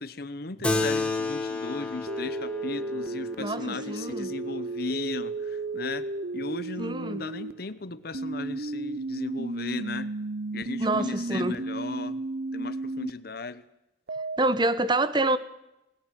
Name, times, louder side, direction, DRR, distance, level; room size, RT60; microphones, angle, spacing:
voice 1, 0.0-6.1 6.3-10.1 10.5-12.2 12.5-13.6, left 3 dB, 50° left, 15 dB, 0.9 m, -36 dB
Keyboard (musical), 0.6-5.5, left 3 dB, 5° left, 1.9 m, -32 dB
sound 1, 2.1-7.5 8.1-13.1 14.1-14.4, right 2 dB, 55° right, 0.6 m, -33 dB
voice 2, 3.4-4.3 6.8-7.2 10.8-11.6 14.4-15.4, right 2 dB, 25° right, 15 dB, 1.0 m, -27 dB
20.5 x 17.5 x 7.7 m, 0.90 s
head